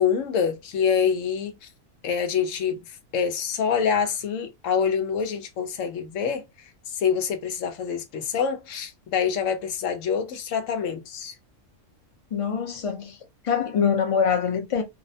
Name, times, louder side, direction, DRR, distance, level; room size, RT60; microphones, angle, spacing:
voice 1, 0.0-1.6 2.0-6.5 6.9-11.3, left 7 dB, 80° left, 1.0 m, -26 dB
voice 2, 12.3-13.2 13.4-14.8, left 7 dB, 40° left, 0.5 m, -24 dB
2.7 x 2.0 x 2.6 m
omnidirectional pair, 1.3 m